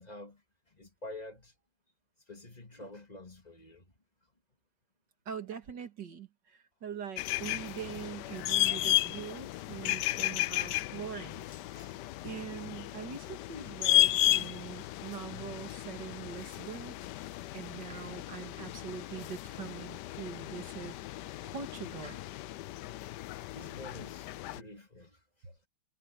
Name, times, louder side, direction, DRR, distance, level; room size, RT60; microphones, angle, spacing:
voice 1, 0.0-1.5 2.3-3.9 9.8-10.5 11.7-12.0 21.3-21.5 22.0-22.2 23.5-25.6, left 1 dB, 20° left, 2.4 m, -49 dB
voice 2, 5.3-11.6 12.2-17.0 17.5-20.9 21.4-22.2, right 8 dB, 60° right, 2.6 m, -43 dB
sound 1, 7.2-24.6, left 15 dB, 75° left, 1.0 m, -34 dB
omnidirectional pair, 2.2 m